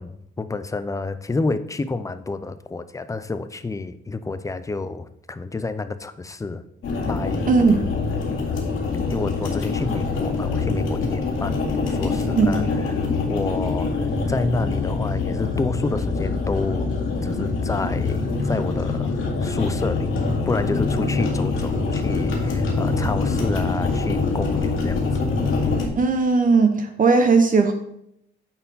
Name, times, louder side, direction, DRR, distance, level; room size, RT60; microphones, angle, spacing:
voice 1, 0.0-6.6 7.1-7.5 8.3-8.5 9.1-12.6 12.9-16.9 17.2-20.1 20.5-25.0, left 3 dB, 15° left, 12 dB, 0.5 m, -29 dB
sound 1, 6.8-25.9, left 3 dB, 85° left, 2.0 m, -24 dB
voice 2, 7.5-7.8 12.3-12.5 25.9-27.7, right 4 dB, 40° right, 6 dB, 0.8 m, -17 dB
9.4 x 4.3 x 4.0 m, 0.76 s
cardioid pair, 135°, 21 cm